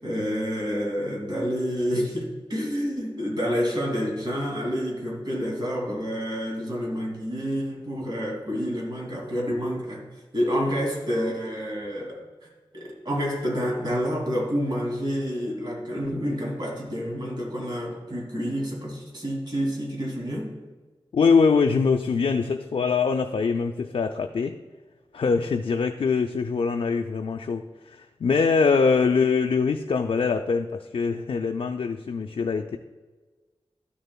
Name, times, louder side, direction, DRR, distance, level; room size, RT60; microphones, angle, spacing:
voice 1, 0.0-10.1 10.3-12.2 12.7-20.5, equal, 50° right, -2 dB, 2.5 m, -28 dB
voice 2, 21.1-24.6 25.1-32.8, left 5 dB, 70° left, 5 dB, 0.4 m, -23 dB
12.5 x 6.6 x 2.2 m, 1.3 s
wide cardioid pair, 85°, 10 cm